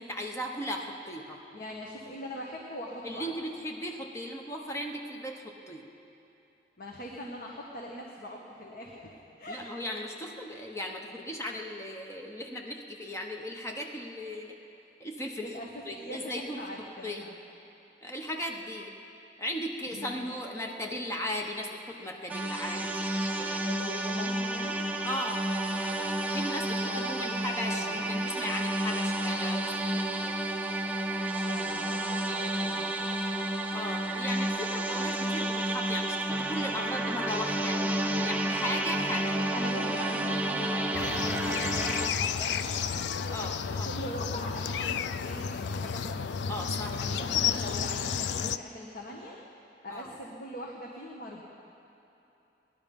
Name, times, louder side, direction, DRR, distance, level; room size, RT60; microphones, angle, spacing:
voice 1, 0.0-1.4 3.0-5.9 9.5-14.6 15.0-15.6 15.9-17.3 18.0-18.9 19.4-23.6 25.0-25.5 26.3-30.4 33.7-37.8 38.2-39.5 43.3-43.9 46.5-47.5 49.9-50.2, equal, 15° left, 1 dB, 1.0 m, -37 dB
voice 2, 1.5-3.4 6.8-9.6 15.4-15.7 15.9-17.3 19.9-20.3 23.6-24.8 26.9-28.0 31.4-33.3 39.5-43.0 43.6-46.2 46.9-49.4 49.8-51.4, left 1 dB, 55° left, -2 dB, 1.3 m, -41 dB
sound 1, 22.3-42.1, right 1 dB, 10° right, 0.7 m, -31 dB
sound 2, 40.9-48.6, left 7 dB, 80° left, 0.4 m, -32 dB
18.5 x 11.0 x 5.3 m, 2.9 s
head